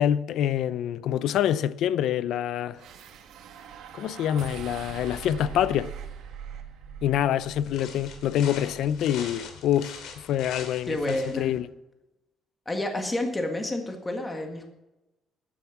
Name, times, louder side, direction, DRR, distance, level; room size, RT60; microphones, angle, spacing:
voice 1, 0.0-2.8 3.9-5.9 7.0-11.7, left 10 dB, 70° left, 0.5 m, -26 dB
sound 1, 2.8-9.1, right 7 dB, 75° right, 1.7 m, -42 dB
sound 2, 7.5-11.6, left 6 dB, 90° left, 2.6 m, -42 dB
voice 2, 10.9-11.5 12.7-14.7, left 1 dB, 15° left, 1.7 m, -29 dB
13.0 x 10.0 x 5.9 m
cardioid pair, 155°, 0 cm